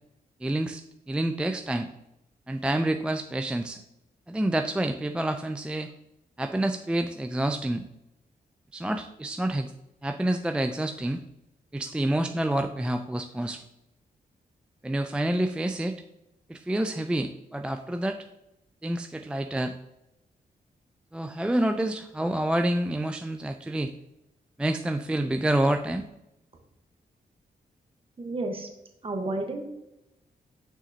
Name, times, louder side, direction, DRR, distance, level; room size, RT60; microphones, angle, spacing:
voice 1, 0.4-0.8 1.1-1.9 2.5-3.8 4.3-5.9 6.4-7.9 8.7-9.7 10.0-11.2 11.7-13.6 14.8-16.0 16.5-18.2 18.8-19.7 21.1-23.9 24.6-26.1, right 1 dB, 5° right, 6 dB, 0.3 m, -28 dB
voice 2, 28.2-28.7 29.0-29.6, right 2 dB, 35° right, 3 dB, 1.2 m, -31 dB
6.6 x 5.9 x 2.8 m, 0.89 s
cardioid pair, 100°, 16 cm